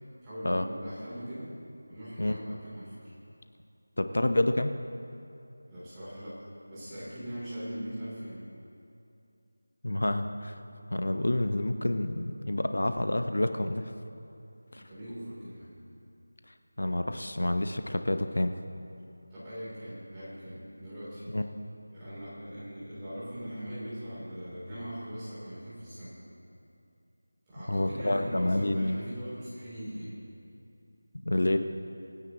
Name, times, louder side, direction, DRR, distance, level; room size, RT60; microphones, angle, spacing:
voice 1, 0.2-1.5 1.9-3.1 5.7-6.4 6.7-8.4 14.7-15.8 19.3-21.3 21.9-26.2 27.5-30.2, equal, 10° right, -13 dB, 3.4 m, -40 dB
voice 2, 4.0-4.7 9.8-10.6 10.9-13.9 14.7-14.8 16.8-18.5 21.3-21.4 27.7-29.0 31.1-31.6, left 1 dB, 85° left, 8 dB, 0.9 m, -28 dB
24.5 x 9.8 x 3.1 m, 2.6 s
figure-of-eight pair, 175°, 0 cm